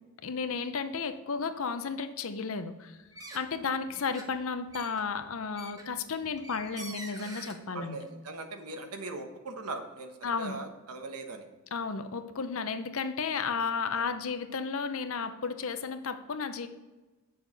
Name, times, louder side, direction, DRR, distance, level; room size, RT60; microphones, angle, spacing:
voice 1, 0.2-3.0 3.3-8.0 10.2-10.6 11.7-16.7, left 5 dB, 70° left, 9 dB, 0.7 m, -33 dB
sound 1, 3.1-3.6 3.9-7.6, right 1 dB, 15° right, 1.0 m, -45 dB
voice 2, 7.7-11.5 13.9-14.1, right 2 dB, 90° right, 5 dB, 1.1 m, -40 dB
8.3 x 6.8 x 4.0 m, 1.2 s
head